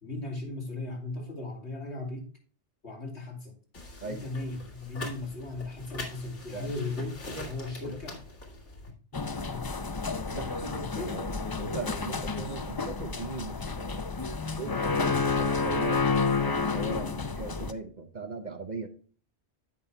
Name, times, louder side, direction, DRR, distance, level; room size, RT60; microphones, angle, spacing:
voice 1, 0.0-2.3 2.8-3.6 4.0-8.2 9.4-9.7 10.3-11.4 17.0-17.3, left 2 dB, 70° left, 2.9 m, -37 dB
sound 1, 3.7-8.9, left 2 dB, 90° left, 2.3 m, -43 dB
sound 2, 9.1-17.7, left 4 dB, 35° left, 0.4 m, -30 dB
voice 2, 10.3-14.0 14.5-16.0 16.4-18.9, right 3 dB, 45° right, 0.8 m, -39 dB
15.0 x 5.4 x 2.2 m
omnidirectional pair, 1.2 m